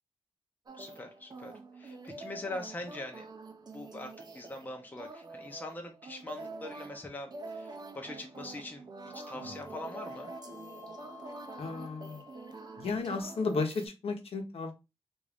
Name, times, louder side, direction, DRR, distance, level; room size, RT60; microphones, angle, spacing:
sound 1, 0.7-13.9, right 3 dB, 40° right, 0.6 m, -46 dB
voice 1, 0.8-3.3 3.6-10.3, left 2 dB, 15° left, 2 dB, 0.7 m, -43 dB
Wind instrument woodwind instrument, 9.0-13.0, left 7 dB, 15° right, 1.0 m, -53 dB
voice 2, 11.6-12.2 12.8-14.7, left 4 dB, 65° left, 3 dB, 0.9 m, -34 dB
3.6 x 2.6 x 3.3 m, 0.25 s
wide cardioid pair, 160°, 11 cm